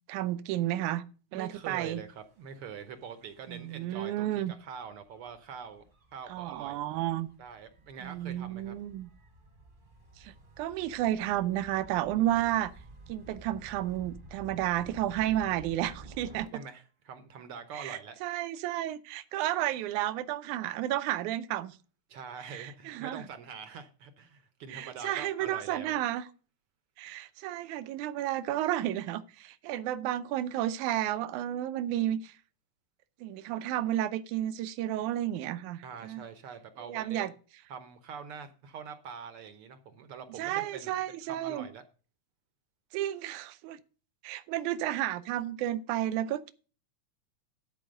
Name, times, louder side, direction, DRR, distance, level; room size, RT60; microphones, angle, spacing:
voice 1, 0.1-1.0 1.3-2.0 3.5-4.5 6.3-7.3 8.0-9.1 10.2-12.7 13.1-16.5 17.7-21.8 22.5-23.2 24.7-26.2 27.0-32.4 33.2-36.2 36.9-37.3 40.4-41.7 42.9-43.8 44.2-46.5, right 13 dB, 85° right, 2.2 m, -32 dB
voice 2, 1.3-5.8 6.1-6.9 7.4-8.7 16.5-18.2 22.1-26.0 35.8-37.3 37.7-41.8, right 6 dB, 65° right, 1.4 m, -44 dB
Gull seagull / Waves surf / Siren, 1.7-16.5, right 2 dB, 30° right, 0.9 m, -53 dB
13.0 x 4.8 x 6.3 m
omnidirectional pair, 3.4 m